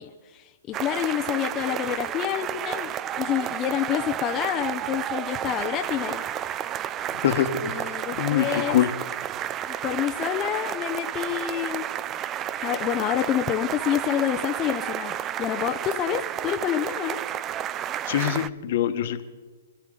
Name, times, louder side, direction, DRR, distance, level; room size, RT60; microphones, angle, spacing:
voice 1, 0.0-2.9 3.2-6.2 7.6-8.8 9.7-11.9 12.6-17.2, left 11 dB, 25° left, 4 dB, 0.7 m, -28 dB
sound 1, 0.7-18.5, right 10 dB, 25° right, 0.4 m, -31 dB
voice 2, 7.1-8.9 18.0-19.2, left 10 dB, 55° left, 9 dB, 1.3 m, -25 dB
26.5 x 13.0 x 3.9 m, 1.3 s
hypercardioid pair, 140°, 0 cm